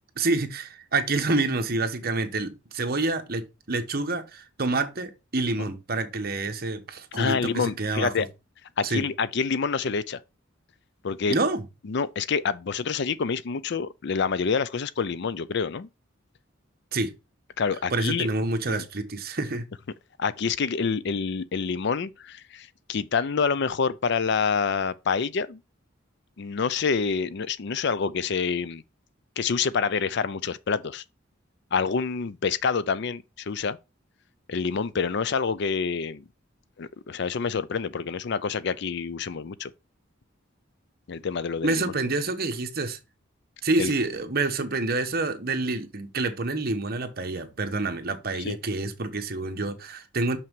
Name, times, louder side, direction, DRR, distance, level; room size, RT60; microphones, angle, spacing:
voice 1, 0.2-3.4 3.7-8.3 8.8-9.0 11.3-11.6 16.9-17.1 17.9-19.7 41.6-43.0 43.6-50.4, right 3 dB, 50° right, 1.2 m, -27 dB
voice 2, 7.1-8.3 8.8-10.2 11.0-11.4 11.9-15.9 17.6-18.3 18.7-18.8 20.2-25.6 26.4-28.8 29.4-31.0 31.7-33.8 34.5-36.2 36.8-39.7 41.1-41.8 43.8-43.9 48.4-48.6, left 5 dB, 60° left, 0.5 m, -27 dB
6.3 x 5.9 x 4.5 m
head